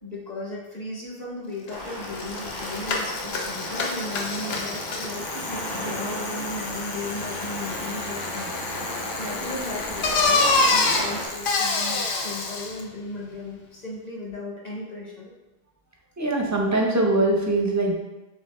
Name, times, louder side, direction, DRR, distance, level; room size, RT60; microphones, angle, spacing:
voice 1, 0.0-8.5 8.8-15.3, left 2 dB, 45° left, -4 dB, 1.1 m, -36 dB
Bicycle, 1.7-1.8 2.0-12.8, left 3 dB, 80° left, 0.9 m, -27 dB
sound 1, 1.7-11.3, left 1 dB, 25° left, 0.7 m, -34 dB
voice 2, 16.2-17.9, right 2 dB, 20° right, -1 dB, 0.5 m, -22 dB
4.0 x 3.5 x 3.3 m, 1.0 s
omnidirectional pair, 1.0 m